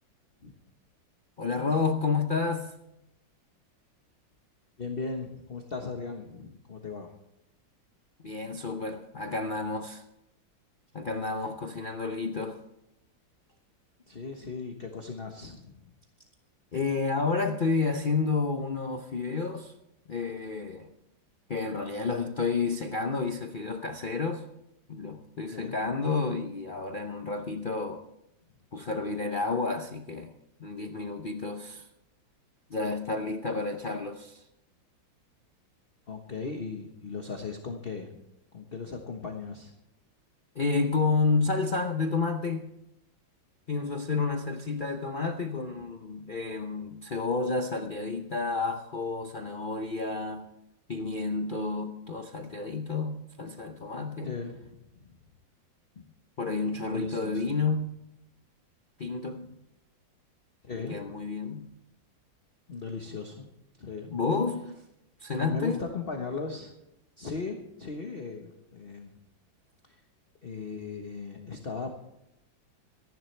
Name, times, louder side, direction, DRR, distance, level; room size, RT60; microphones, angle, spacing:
voice 1, 1.4-2.7 8.2-10.0 10.9-12.6 16.7-19.7 20.1-20.9 21.5-24.4 24.9-28.0 28.7-30.3 30.6-31.9 32.7-34.4 40.6-42.7 43.7-50.5 50.9-54.4 56.0-56.1 56.4-57.9 59.0-59.6 60.7-61.7 64.1-64.8 65.2-65.8, left 4 dB, 80° left, 5 dB, 0.4 m, -30 dB
voice 2, 4.8-7.1 14.1-15.8 25.5-25.8 36.1-38.2 38.5-39.7 54.2-55.2 56.9-57.4 60.6-61.1 62.7-63.5 63.8-64.1 65.4-66.7 67.2-69.2 69.8-70.0 70.4-71.9, left 4 dB, 35° left, 3 dB, 1.2 m, -38 dB
26.0 x 11.0 x 3.3 m, 0.86 s
omnidirectional pair, 2.1 m